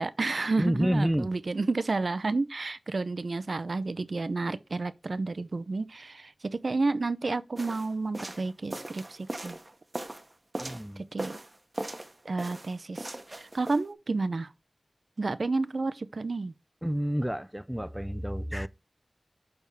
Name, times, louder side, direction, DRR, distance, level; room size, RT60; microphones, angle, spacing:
voice 1, 0.0-9.6 11.0-11.4 12.2-14.5 15.2-16.5, right 3 dB, 65° right, 0.5 m, -31 dB
voice 2, 0.6-1.3 10.6-11.0 16.8-18.7, equal, 5° right, 0.4 m, -29 dB
sound 1, 7.5-10.9 11.2-12.1 12.4-13.8, right 1 dB, 35° right, 0.9 m, -39 dB
6.4 x 3.5 x 5.4 m
wide cardioid pair, 75°, 0 cm